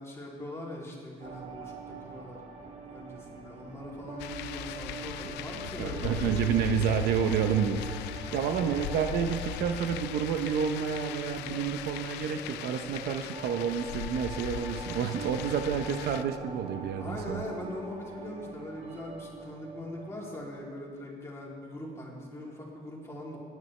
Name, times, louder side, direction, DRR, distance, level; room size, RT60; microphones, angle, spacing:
voice 1, 0.0-2.4 2.8-6.9 8.2-8.9 17.0-23.4, left 1 dB, 15° left, -4 dB, 3.0 m, -41 dB
sound 1, 1.2-20.4, right 4 dB, 40° right, 1.3 m, -44 dB
sound 2, 4.2-16.2, left 13 dB, 85° left, 0.4 m, -39 dB
voice 2, 5.8-17.4, right 7 dB, 70° right, 7 dB, 0.7 m, -29 dB
18.0 x 9.2 x 3.3 m, 2.1 s
cardioid pair, 110°, 17 cm